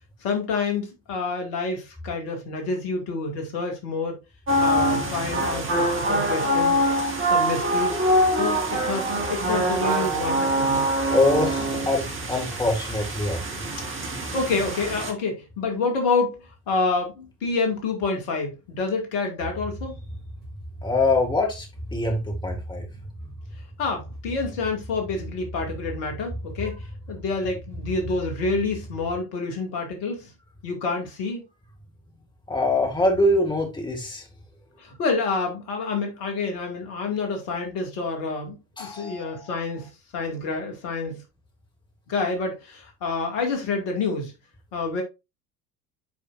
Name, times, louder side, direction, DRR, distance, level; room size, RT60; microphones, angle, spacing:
voice 1, 0.2-4.2 4.6-6.8 7.3-8.1 8.3-10.9 14.0-20.0 23.8-30.3 30.6-31.4 34.8-41.2 42.1-44.3 44.7-45.0, left 4 dB, 55° left, 2.3 m, -28 dB
sound 1, 4.5-15.1, right 1 dB, 25° right, 1.9 m, -24 dB
voice 2, 11.1-13.4 13.7-13.9 20.8-21.7 21.9-22.9 32.5-34.2 38.8-39.6, left 2 dB, 10° left, 2.1 m, -24 dB
sound 2, 19.4-29.2, equal, 65° right, 3.7 m, -38 dB
9.4 x 5.0 x 2.6 m
figure-of-eight pair, 70°, 47 cm